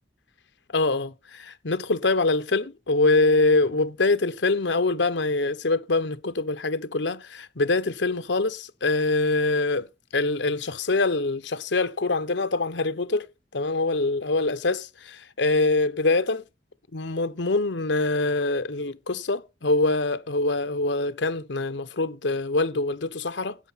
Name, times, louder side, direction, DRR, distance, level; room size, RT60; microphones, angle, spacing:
voice 1, 0.7-9.9 10.1-13.3 13.5-16.4 16.9-23.6, left 3 dB, 85° left, 1.0 m, -24 dB
16.5 x 8.2 x 4.1 m
head